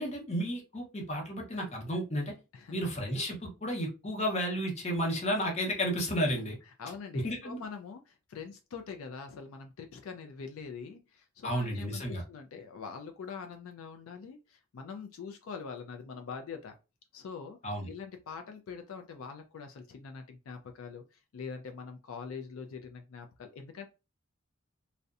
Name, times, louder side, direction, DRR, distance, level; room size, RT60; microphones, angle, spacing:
voice 1, 0.0-2.3 2.7-6.6 7.2-7.6 11.4-12.2 17.6-17.9, equal, 30° left, 0.7 m, -32 dB
voice 2, 6.8-16.7 17.1-17.6 17.9-23.9, left 5 dB, 75° left, 0.4 m, -44 dB
2.6 x 2.1 x 2.4 m
head